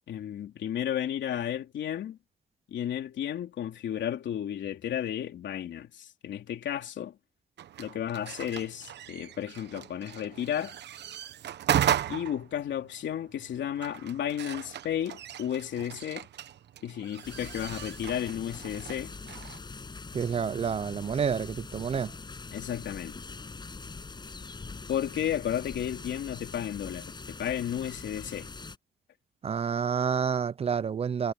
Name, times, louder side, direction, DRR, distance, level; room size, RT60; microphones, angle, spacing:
voice 1, 0.0-2.2 2.7-7.2 7.8-10.7 12.1-16.3 16.8-19.1 22.5-23.2 24.9-28.5, left 10 dB, 85° left, 3.3 m, -33 dB
sound 1, 7.6-19.6, right 10 dB, 70° right, 1.0 m, -36 dB
sound 2, 17.2-28.8, left 4 dB, 25° left, 6.2 m, -43 dB
voice 2, 20.1-22.1 29.4-31.3, right 7 dB, 35° right, 0.4 m, -29 dB
wide cardioid pair, 165°, 18 cm